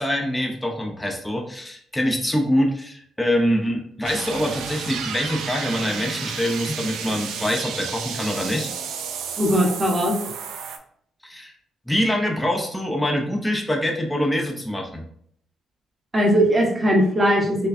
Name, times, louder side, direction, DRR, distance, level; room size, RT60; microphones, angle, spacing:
voice 1, 0.0-8.7 11.2-11.5 11.9-15.0, equal, 5° left, 0 dB, 0.6 m, -24 dB
sound 1, 4.0-10.8, right 6 dB, 85° right, 0.4 m, -32 dB
voice 2, 9.4-10.1 16.1-17.7, equal, 20° right, -1 dB, 1.1 m, -19 dB
4.5 x 2.2 x 2.6 m, 0.67 s
cardioid pair, 90°, 0 cm